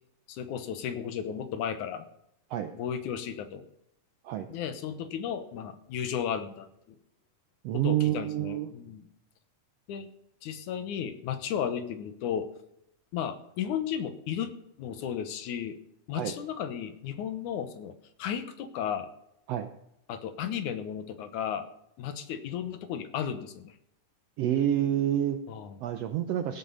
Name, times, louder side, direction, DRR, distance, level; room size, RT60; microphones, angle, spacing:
voice 1, 0.3-2.1 2.8-3.6 4.5-7.0 7.7-9.0 9.9-10.1 10.4-12.5 13.1-15.8 16.1-19.1 20.1-21.7 22.0-23.8 25.5-25.7, left 8 dB, 75° left, 10 dB, 2.4 m, -34 dB
voice 2, 7.6-8.7 16.1-16.3 19.5-19.7 24.4-25.4 25.8-26.6, right 11 dB, 75° right, 8 dB, 1.5 m, -28 dB
16.5 x 8.2 x 5.5 m, 0.77 s
omnidirectional pair, 3.7 m